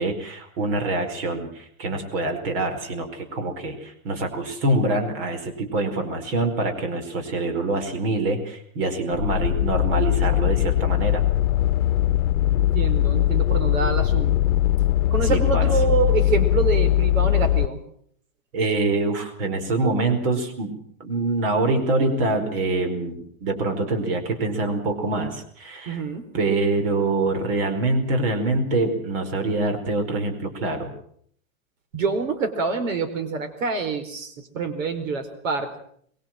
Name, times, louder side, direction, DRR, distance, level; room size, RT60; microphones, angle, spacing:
voice 1, 0.0-11.3 15.2-15.6 18.5-26.0 26.3-31.0, right 2 dB, 45° right, 6 dB, 4.8 m, -25 dB
sound 1, 9.1-17.7, left 14 dB, 75° left, 0.9 m, -21 dB
voice 2, 12.6-14.5 15.1-17.8 25.9-26.3 31.9-35.7, right 4 dB, 70° right, 8 dB, 4.5 m, -26 dB
23.0 x 22.5 x 7.7 m, 0.65 s
supercardioid pair, 170°, 41 cm